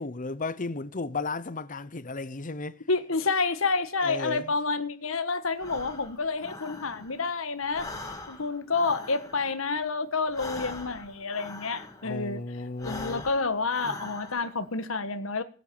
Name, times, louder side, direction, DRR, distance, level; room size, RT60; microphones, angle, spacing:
voice 1, 0.0-2.8 4.0-4.5 12.0-13.3, left 3 dB, 40° left, 0.9 m, -34 dB
voice 2, 2.9-7.9 8.3-12.4 12.8-15.4, left 4 dB, 70° left, 1.5 m, -29 dB
Breathing, 5.6-7.3 7.6-12.2 12.7-14.6, left 2 dB, 15° left, 2.6 m, -42 dB
17.5 x 8.1 x 8.7 m
head